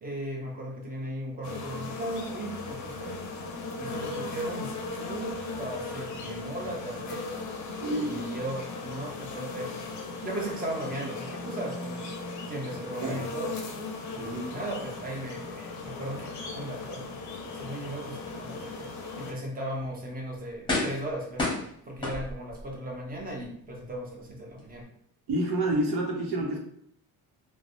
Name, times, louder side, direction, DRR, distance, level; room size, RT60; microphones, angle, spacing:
voice 1, 0.0-3.2 3.8-7.4 8.0-9.7 10.2-12.1 12.5-13.6 14.1-17.1 17.5-18.9 19.2-21.5 21.9-24.9, right 1 dB, 25° right, -1 dB, 0.7 m, -37 dB
sound 1, 1.4-19.3, left 3 dB, 50° left, 0.6 m, -37 dB
voice 2, 7.8-8.2 13.0-13.2 14.2-14.6 25.3-26.6, right 1 dB, 85° right, -1 dB, 0.9 m, -29 dB
sound 2, 19.7-19.9 20.7-21.1 21.4-22.6 23.2-23.3, left 2 dB, 15° left, 0.8 m, -30 dB
3.2 x 2.1 x 2.5 m, 0.68 s
cardioid pair, 140°, 37 cm